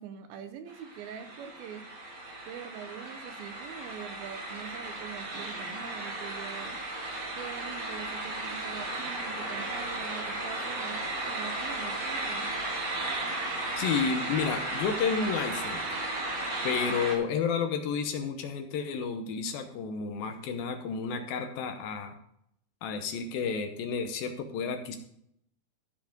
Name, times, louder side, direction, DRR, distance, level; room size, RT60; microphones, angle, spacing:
voice 1, 0.0-1.8 2.5-6.8 7.4-12.5, right 8 dB, 75° right, 8 dB, 2.5 m, -44 dB
sound 1, 0.7-17.1, right 2 dB, 45° right, 3.1 m, -35 dB
voice 2, 13.8-15.8 16.6-22.2 22.8-25.0, left 6 dB, 75° left, 5 dB, 2.5 m, -31 dB
14.0 x 5.3 x 5.1 m, 0.72 s
omnidirectional pair, 4.5 m